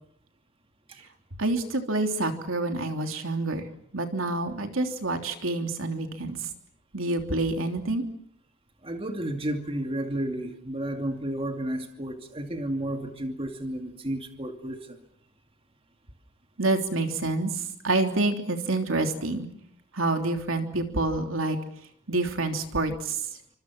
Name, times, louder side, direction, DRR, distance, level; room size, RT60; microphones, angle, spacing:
voice 1, 1.4-3.6 3.9-6.4 6.9-8.0 16.6-17.5 17.8-19.5 19.9-21.6 22.1-23.2, right 2 dB, 75° right, 5 dB, 3.3 m, -27 dB
voice 2, 8.8-14.8, right 1 dB, 25° right, 4 dB, 2.5 m, -32 dB
29.0 x 25.5 x 6.2 m, 0.69 s
head